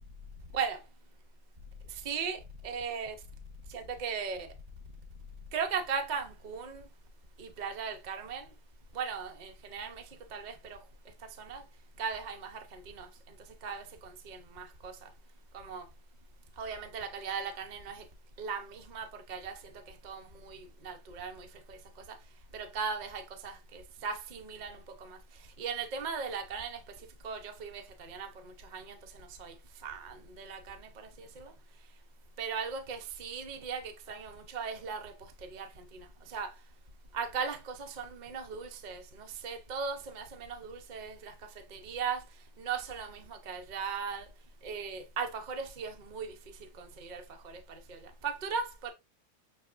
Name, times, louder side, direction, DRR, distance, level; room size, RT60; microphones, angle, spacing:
voice 1, 1.9-3.2 3.7-4.5 5.5-6.8 7.4-8.5 8.9-10.0 10.3-10.8 11.4-11.6 12.0-13.4 13.6-15.1 15.5-15.8 16.6-18.0 18.4-19.7 20.0-21.8 22.1-22.2 22.5-25.2 25.6-26.8 27.2-29.5 29.8-31.5 32.4-35.1 35.4-36.5 37.1-42.2 42.6-44.3 44.6-46.3 46.8-48.9, right 6 dB, 55° right, 0.5 m, -38 dB
6.6 x 3.0 x 2.4 m
omnidirectional pair, 2.0 m